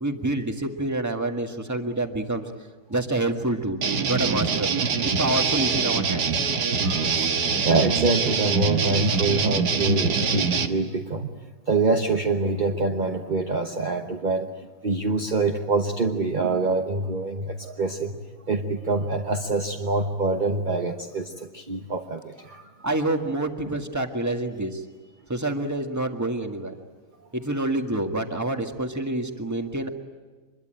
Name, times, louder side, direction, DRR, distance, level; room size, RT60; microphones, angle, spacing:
voice 1, 0.0-2.5 2.9-3.8 4.1-4.8 5.0-6.3 22.8-24.8 25.3-26.8 27.3-29.9, right 2 dB, 10° right, 5 dB, 1.7 m, -27 dB
sound 1, 3.8-10.7, right 5 dB, 90° right, 2.0 m, -24 dB
voice 2, 6.8-7.3 7.6-11.3 11.7-14.5 14.8-18.2 18.5-22.6, right 3 dB, 35° right, 4 dB, 1.1 m, -25 dB
25.5 x 22.5 x 9.0 m, 1.4 s
omnidirectional pair, 1.7 m